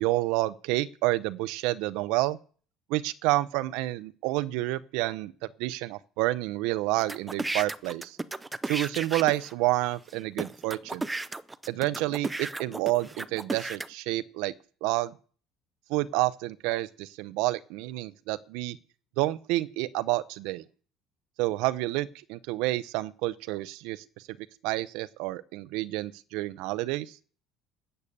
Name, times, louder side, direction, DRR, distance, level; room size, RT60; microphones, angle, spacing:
voice 1, 0.0-2.4 2.9-5.3 5.6-8.2 8.7-11.1 11.7-14.5 14.8-15.1 15.9-18.8 19.2-20.6 21.4-24.0 24.6-27.2, right 18 dB, 80° right, 0.5 m, -29 dB
sound 1, 7.0-9.5 10.1-10.2 10.4-13.9, right 2 dB, 10° right, 0.5 m, -34 dB
13.5 x 6.8 x 8.6 m
cardioid pair, 140°, 0 cm